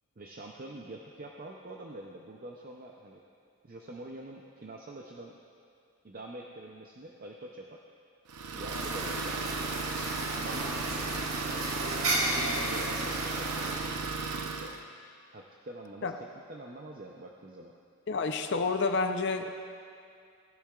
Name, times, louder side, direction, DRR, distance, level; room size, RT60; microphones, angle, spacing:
voice 1, 0.2-3.2 3.6-5.4 6.0-7.8 8.5-9.4 10.3-11.7 12.1-14.8 15.3-17.7, right 1 dB, 40° right, 0 dB, 0.5 m, -45 dB
Idling, 8.3-14.8, right 4 dB, 90° right, 0.7 m, -35 dB
sound 1, 8.7-13.7, right 1 dB, 65° right, 1.7 m, -34 dB
voice 2, 18.1-19.6, left 4 dB, 50° left, 7 dB, 0.6 m, -29 dB
17.5 x 10.0 x 2.4 m, 2.3 s
head